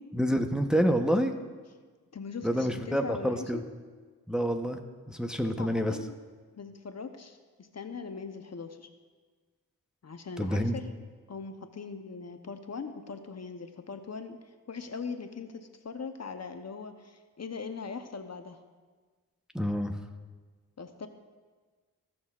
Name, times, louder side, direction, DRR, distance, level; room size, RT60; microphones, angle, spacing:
voice 1, 0.2-1.3 2.4-3.6 4.3-4.8 5.1-6.0 10.4-10.8 19.5-19.9, equal, ahead, 5 dB, 0.9 m, -27 dB
voice 2, 2.1-3.7 5.4-6.1 6.5-8.9 10.0-10.9 11.3-18.6 20.8-21.1, left 5 dB, 45° left, 7 dB, 0.9 m, -41 dB
18.5 x 6.3 x 2.4 m, 1.4 s
supercardioid pair, 45°, 37 cm